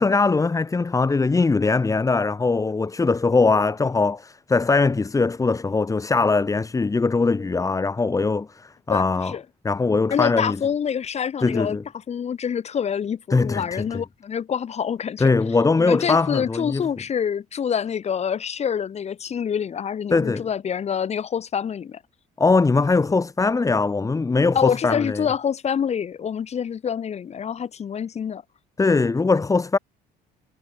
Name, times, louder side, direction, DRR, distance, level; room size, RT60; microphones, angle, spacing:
voice 1, 0.0-9.4 9.6-10.6 11.4-11.8 13.3-14.0 15.2-16.8 20.1-20.5 22.4-25.3 28.8-29.8, left 3 dB, 20° left, 1.7 m, -21 dB
voice 2, 8.9-9.4 10.1-11.8 12.1-15.3 15.8-22.0 24.5-28.4, left 7 dB, 40° left, 1.5 m, -26 dB
cardioid pair, 110°, 17 cm